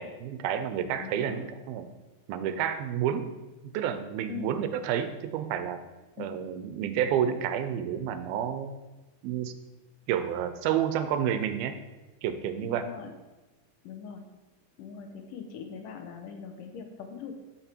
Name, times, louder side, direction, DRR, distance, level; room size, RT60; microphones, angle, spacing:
voice 1, 0.0-1.9 2.3-3.3 3.6-5.8 6.2-8.8 9.2-9.5 10.1-11.8 12.2-12.9, right 9 dB, 90° right, 10 dB, 2.6 m, -30 dB
voice 2, 1.0-1.4 4.3-4.5 6.2-6.3 12.6-13.1 13.8-14.2 14.8-17.3, left 7 dB, 75° left, 5 dB, 2.3 m, -41 dB
13.0 x 6.2 x 4.4 m, 1.1 s
omnidirectional pair, 4.2 m